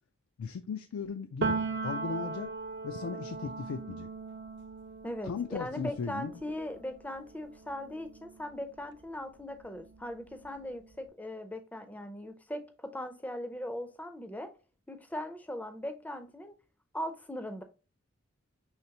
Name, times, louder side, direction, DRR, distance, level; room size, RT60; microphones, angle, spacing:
voice 1, 0.4-2.5 2.8-4.1 5.2-6.3, left 5 dB, 85° left, 0.4 m, -37 dB
Piano, 1.4-9.0 9.4-10.9, right 3 dB, 50° right, 0.5 m, -39 dB
voice 2, 5.0-14.5 14.9-16.5 16.9-17.6, left 1 dB, 5° left, 0.4 m, -39 dB
5.6 x 3.3 x 2.8 m
head